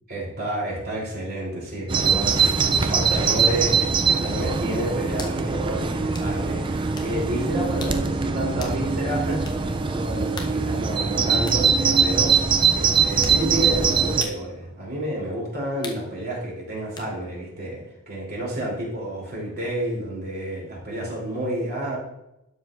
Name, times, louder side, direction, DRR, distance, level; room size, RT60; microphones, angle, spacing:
voice 1, 0.1-22.0, right 1 dB, 45° right, -4 dB, 3.1 m, -30 dB
Bird vocalization bird call bird song, 1.9-14.2, right 5 dB, 20° right, 0.3 m, -22 dB
sound 1, 4.3-4.4 5.2-5.4 6.1-6.3 7.0-7.1 7.8-8.0 8.6-8.8 9.4-9.6 10.4-10.6 11.5-11.6 12.3-12.5 13.2-13.4 14.2-14.4 15.8-16.1 17.0-17.1, left 3 dB, 20° left, 0.7 m, -38 dB
12.0 x 6.4 x 2.5 m, 0.88 s
head